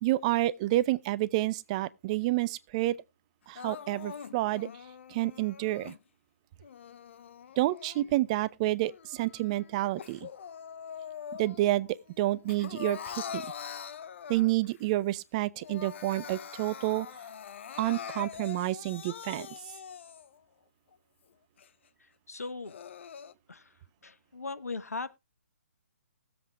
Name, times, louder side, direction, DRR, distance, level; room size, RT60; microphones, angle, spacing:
voice 1, 0.0-3.0 3.5-4.7 5.1-5.9 7.6-10.3 11.4-11.9 12.2-13.5 14.3-17.1 17.8-19.5, right 16 dB, 25° right, 0.4 m, -29 dB
Crying sobbing, 3.5-6.0 6.6-8.4 8.8-11.8 12.1-14.7 15.2-15.3 15.5-20.4 20.9-21.0 21.6-21.7 22.4-23.3, left 7 dB, 50° left, 0.5 m, -43 dB
voice 2, 22.3-22.7 23.5-23.7 24.0-25.2, left 3 dB, 80° left, 0.9 m, -38 dB
20.0 x 7.8 x 2.2 m
figure-of-eight pair, 135°, 8 cm